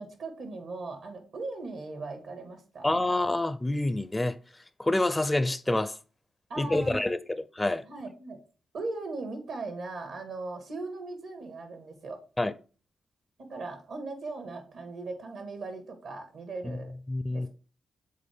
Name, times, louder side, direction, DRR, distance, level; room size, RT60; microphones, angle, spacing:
voice 1, 0.0-2.9 6.5-7.0 7.8-8.4 8.7-12.2 13.4-17.0 17.3-17.5, right 3 dB, 75° right, 1.7 m, -38 dB
voice 2, 2.8-4.4 4.8-6.0 6.6-7.8 12.4-12.5 16.6-16.8 17.1-17.5, left 2 dB, 20° left, 0.5 m, -27 dB
7.6 x 3.9 x 3.5 m
supercardioid pair, 60°, 0 cm